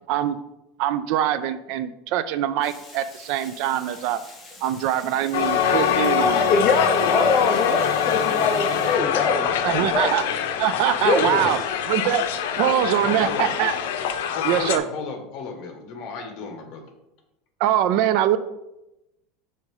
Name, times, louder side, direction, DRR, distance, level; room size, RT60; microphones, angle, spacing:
voice 1, 0.8-4.2 4.6-6.4 7.0-7.2 9.6-10.2 10.6-11.6 11.9-12.2 12.6-13.7 14.4-14.8 17.6-18.4, right 11 dB, 50° right, 13 dB, 0.3 m, -23 dB
Water, 2.6-9.0, left 2 dB, 10° left, 1.1 m, -46 dB
Crowd, 5.3-14.8, left 8 dB, 85° left, 0.6 m, -24 dB
voice 2, 6.4-10.1 11.0-11.4, left 4 dB, 25° left, 2 dB, 0.5 m, -23 dB
voice 3, 9.4-10.0 11.1-11.6 13.0-13.5 14.3-16.9, left 4 dB, 45° left, 4 dB, 1.1 m, -34 dB
5.1 x 4.2 x 4.7 m, 0.92 s
supercardioid pair, 175°, 0 cm